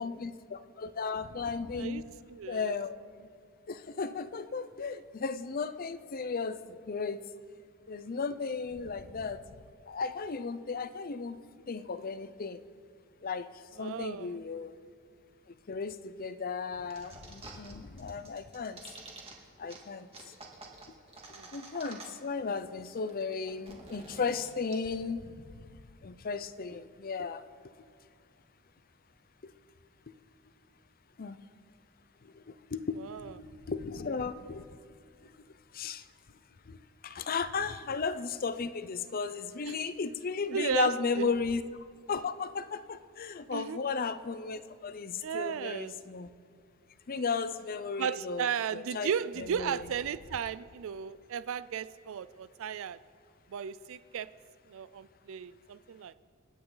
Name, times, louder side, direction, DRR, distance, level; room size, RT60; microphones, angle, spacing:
voice 1, 0.0-2.0 2.5-3.3 3.7-6.6 6.9-7.2 7.9-9.4 9.9-11.4 11.7-12.6 13.2-13.5 13.8-14.7 15.7-18.8 19.6-20.1 21.5-25.3 26.0-27.4 29.4-29.5 31.2-31.4 32.5-33.0 33.7-34.7 35.7-36.0 36.7-36.8 37.0-41.6 42.1-46.3 47.1-49.1 49.4-49.8, left 5 dB, 45° left, 13 dB, 0.5 m, -35 dB
voice 2, 2.3-2.7 13.8-14.4 21.3-21.5 33.0-33.3 39.7-39.8 40.5-41.3 43.5-43.8 45.2-46.0 48.0-53.0 53.5-54.3 54.7-56.1, right 7 dB, 65° right, 16 dB, 0.4 m, -35 dB
sound 1, 16.9-17.7 18.0-19.3 19.7-19.8 20.1-22.3 22.6-22.7 22.9-24.7, right 3 dB, 30° right, 2.0 m, -48 dB
27.5 x 9.3 x 3.9 m, 2.3 s
head